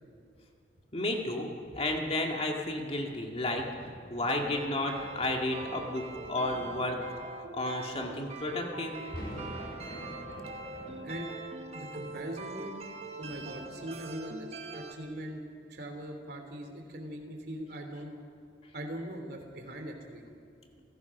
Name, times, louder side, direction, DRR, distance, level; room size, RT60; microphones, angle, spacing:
voice 1, 0.9-3.7 4.1-7.0 7.5-9.0, left 1 dB, 35° left, 1 dB, 2.2 m, -32 dB
sound 1, 1.6-14.4 15.1-15.2, equal, 70° left, 5.1 m, -50 dB
sound 2, 4.5-14.9, right 3 dB, 40° right, 1.4 m, -43 dB
voice 2, 11.0-11.4 11.7-12.8 13.2-15.4 15.7-18.1 18.7-20.2, right 1 dB, 65° right, 4 dB, 3.2 m, -41 dB
29.5 x 16.0 x 6.1 m, 2.3 s
head